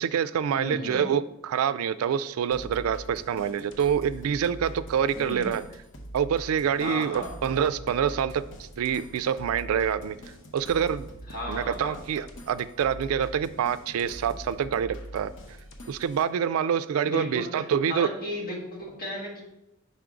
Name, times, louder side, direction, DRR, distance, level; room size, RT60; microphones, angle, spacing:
voice 1, 0.0-5.6 6.1-8.4 8.8-10.2 10.5-11.1 11.5-15.3 15.9-18.1, right 8 dB, 85° right, 14 dB, 0.3 m, -26 dB
voice 2, 0.6-1.1 5.1-5.5 6.8-7.3 11.3-12.0 17.1-19.4, left 1 dB, 45° left, -2 dB, 1.6 m, -35 dB
sound 1, 2.5-16.2, equal, 65° left, 0.8 m, -43 dB
5.6 x 3.8 x 4.6 m, 0.88 s
head